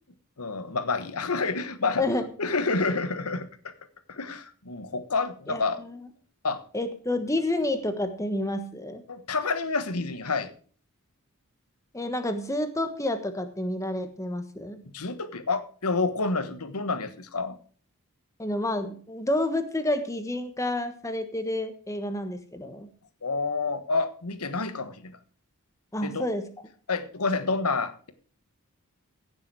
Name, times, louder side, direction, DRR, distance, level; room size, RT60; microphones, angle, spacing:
voice 1, 0.4-2.0 2.4-3.5 4.1-5.8 6.4-6.6 9.1-10.5 14.9-17.6 23.2-25.2 26.0-26.3 26.9-28.1, left 3 dB, 85° left, 11 dB, 1.3 m, -28 dB
voice 2, 5.5-6.0 6.7-9.0 11.9-14.8 18.4-22.9 25.9-26.4, left 1 dB, 15° left, 8 dB, 1.3 m, -29 dB
16.0 x 7.0 x 4.8 m, 0.42 s
head